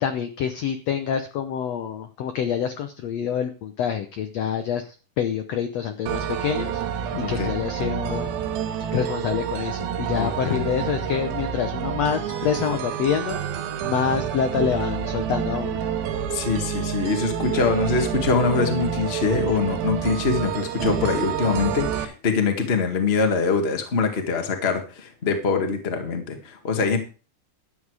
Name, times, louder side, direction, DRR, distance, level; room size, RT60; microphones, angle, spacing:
voice 1, 0.0-6.8 7.3-8.3 8.9-13.4 13.8-15.8, left 8 dB, 80° left, 8 dB, 1.4 m, -26 dB
sound 1, 6.1-22.1, right 8 dB, 85° right, 3.1 m, -28 dB
voice 2, 7.1-7.5 10.1-10.6 16.3-27.0, left 4 dB, 35° left, 5 dB, 1.0 m, -24 dB
12.5 x 8.4 x 4.9 m, 0.36 s
omnidirectional pair, 4.3 m